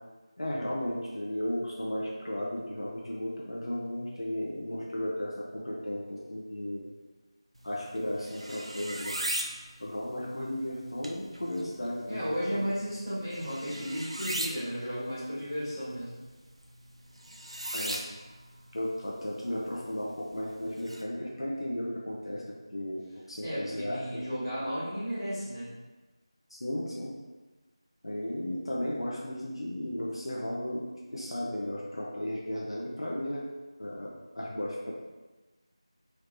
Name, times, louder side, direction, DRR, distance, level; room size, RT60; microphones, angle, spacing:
voice 1, 0.4-6.8 7.6-9.1 9.8-12.6 17.7-18.0 18.7-22.4 22.7-23.0 23.3-24.2 26.5-27.1 28.0-30.8 31.1-33.4 33.8-34.1 34.3-34.9, left 1 dB, 65° left, -4 dB, 0.6 m, -34 dB
sound 1, 7.6-21.0, right 1 dB, 75° right, 0.5 m, -40 dB
voice 2, 12.1-16.2 23.4-25.7, equal, 10° left, -16 dB, 1.4 m, -34 dB
3.2 x 3.1 x 2.5 m, 1.2 s
figure-of-eight pair, 170°, 3 cm